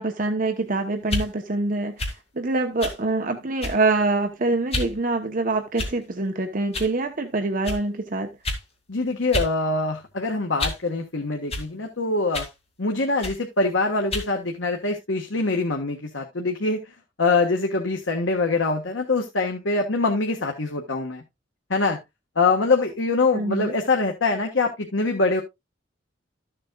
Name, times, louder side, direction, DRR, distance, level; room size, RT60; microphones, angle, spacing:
voice 1, 0.0-8.3 23.3-23.7, right 2 dB, 45° right, 1.0 m, -25 dB
sound 1, 1.0-1.3 2.0-2.2 2.8-3.0 3.6-3.9 4.7-4.9 5.7-6.1 6.7-6.9 7.6-7.8 8.4-8.6 9.3-9.5 9.9-10.9 11.5-11.7 12.3-12.6 13.2-13.4 14.1-14.3, left 2 dB, 35° left, 2.5 m, -29 dB
voice 2, 8.9-12.5 12.8-16.9 17.2-21.2 21.7-22.0 22.3-25.4, left 3 dB, 85° left, 1.5 m, -24 dB
13.5 x 7.5 x 2.4 m
head